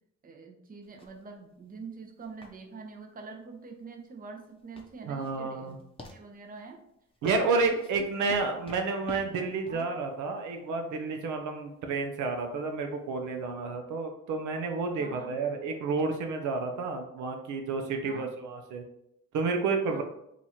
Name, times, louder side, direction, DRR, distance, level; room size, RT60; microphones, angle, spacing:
voice 1, 0.2-5.8 6.1-6.8 7.5-8.0 9.7-9.9 15.0-15.3 18.0-18.4 19.9-20.0, right 4 dB, 30° right, 2 dB, 0.6 m, -45 dB
sound 1, 0.8-13.5, left 3 dB, 20° left, 0.7 m, -51 dB
voice 2, 5.1-5.8 7.2-18.8 19.3-20.0, right 4 dB, 80° right, 4 dB, 0.6 m, -30 dB
3.0 x 2.5 x 4.1 m, 0.78 s
cardioid pair, 90°, 30 cm